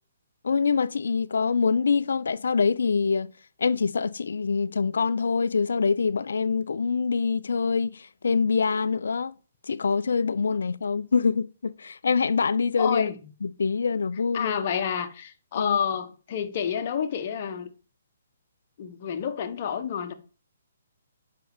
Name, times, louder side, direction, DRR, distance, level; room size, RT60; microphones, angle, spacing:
voice 1, 0.4-3.3 3.6-9.3 9.7-13.1 13.4-14.6 15.5-15.8, left 5 dB, 75° left, 0.5 m, -25 dB
voice 2, 12.8-13.3 14.3-17.7 18.8-20.1, left 8 dB, 45° left, 1.2 m, -29 dB
7.8 x 5.5 x 5.0 m
hypercardioid pair, 140°, 0 cm